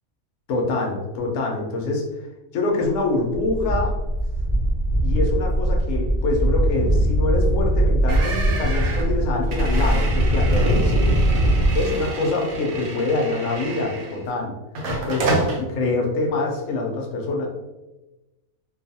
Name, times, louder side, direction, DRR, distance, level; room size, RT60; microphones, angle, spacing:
voice 1, 0.5-2.1 2.5-3.9 5.0-11.2 11.7-14.6 15.1-17.5, left 2 dB, 65° left, 0 dB, 0.9 m, -25 dB
sound 1, 3.0-3.1 3.3-11.8, right 1 dB, 40° right, 0.7 m, -21 dB
sound 2, 8.1-14.3 14.8-15.6, right 2 dB, 80° right, 1.1 m, -29 dB
2.6 x 2.3 x 2.6 m, 1.0 s
omnidirectional pair, 1.5 m